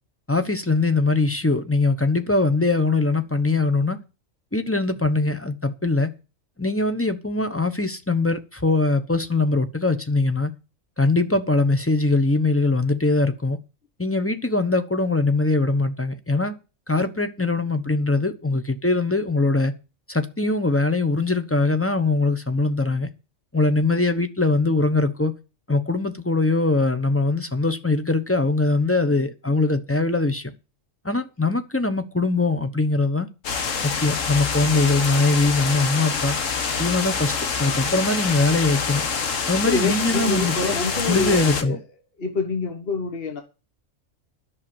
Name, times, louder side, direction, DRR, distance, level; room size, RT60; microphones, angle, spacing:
voice 1, 0.3-4.0 4.5-6.1 6.6-10.5 11.0-13.6 14.0-16.5 16.9-19.7 20.1-23.1 23.5-25.3 25.7-30.5 31.0-33.3 33.8-36.4 36.8-39.0 39.5-40.7 41.1-41.8, left 3 dB, 10° left, 0.9 m, -22 dB
sound 1, 33.4-41.6, left 5 dB, 75° left, 1.7 m, -26 dB
voice 2, 39.6-41.8 42.2-43.4, left 3 dB, 45° left, 1.7 m, -26 dB
10.5 x 6.5 x 9.0 m
omnidirectional pair, 1.4 m